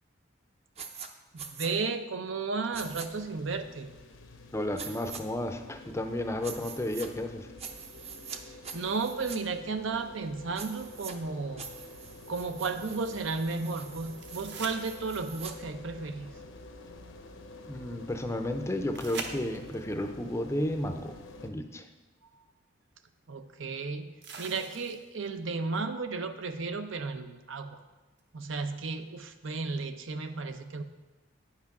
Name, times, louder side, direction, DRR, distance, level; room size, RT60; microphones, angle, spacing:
sound 1, 0.8-1.1 1.4-1.7 2.7-3.1 4.8-5.2 6.4-7.1 7.6-8.4 8.6-9.4 10.6-11.1 11.6-15.5, right 6 dB, 30° right, 0.6 m, -44 dB
voice 1, 1.3-3.9 8.3-11.6 12.3-16.3 22.3-22.5 23.3-27.8 28.3-30.8, right 4 dB, 75° right, 9 dB, 0.7 m, -34 dB
sound 2, 2.7-21.5, left 2 dB, 80° left, 0.9 m, -49 dB
voice 2, 4.5-7.5 17.7-21.2 21.4-21.9, left 1 dB, 15° left, 7 dB, 0.5 m, -32 dB
sound 3, 14.2-15.5 18.9-19.9 21.8-21.9 24.2-25.3 28.2-28.3, right 4 dB, 60° right, 1.0 m, -42 dB
9.3 x 5.8 x 5.9 m, 1.2 s
head